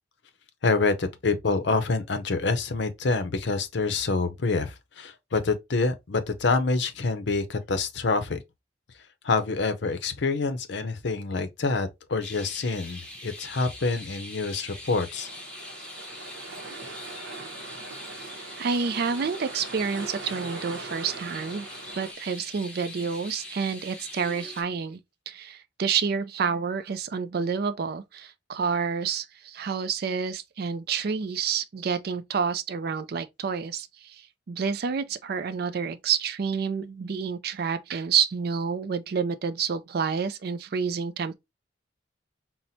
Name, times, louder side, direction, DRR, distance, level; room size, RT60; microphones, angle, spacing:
voice 1, 0.6-8.4 9.2-15.3, left 3 dB, 65° left, 0.6 m, -27 dB
sound 1, 12.2-24.6, left 1 dB, 5° left, 0.7 m, -43 dB
sound 2, 15.1-22.1, right 3 dB, 70° right, 0.8 m, -41 dB
voice 2, 18.6-21.7 21.9-25.0 25.3-41.3, right 6 dB, 50° right, 0.4 m, -29 dB
5.6 x 2.1 x 2.6 m
head